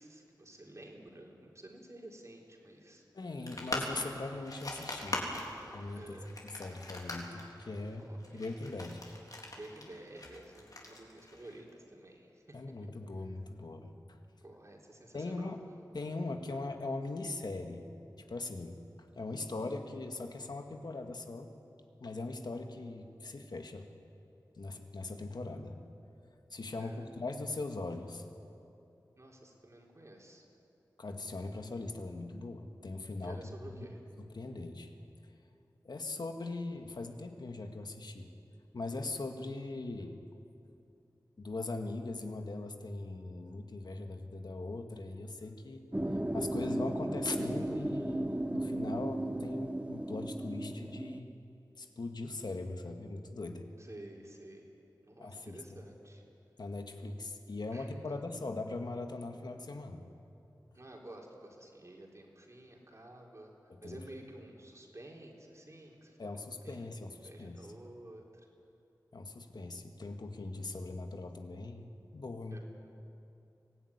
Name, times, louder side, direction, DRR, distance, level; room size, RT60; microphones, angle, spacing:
voice 1, 0.0-3.0 6.0-6.3 8.0-8.4 9.5-12.6 13.2-13.3 14.4-15.6 16.5-16.6 26.8-27.0 29.2-30.4 33.2-34.0 53.8-54.7 55.0-56.2 57.7-58.2 60.7-63.5 63.8-66.8 67.1-68.3 72.5-72.6, right 1 dB, 40° right, -1 dB, 4.0 m, -51 dB
voice 2, 3.1-5.3 5.7-6.2 6.6-9.0 12.5-14.2 15.1-15.6 15.9-17.9 18.3-18.8 19.2-21.5 22.0-23.9 24.6-25.8 26.5-28.3 31.0-33.4 33.7-33.9 34.3-34.9 35.8-38.3 38.7-40.2 41.4-45.8 46.1-51.3 51.8-53.7 55.2-55.8 56.6-60.0 63.7-64.0 66.2-67.7 69.1-72.6, left 2 dB, 70° left, 5 dB, 1.9 m, -40 dB
sound 1, 3.5-11.7, left 1 dB, 55° left, 3.8 m, -42 dB
sound 2, 45.9-51.2, right 1 dB, 15° right, 1.1 m, -35 dB
24.0 x 16.0 x 9.9 m, 2.7 s
wide cardioid pair, 70°, 7 cm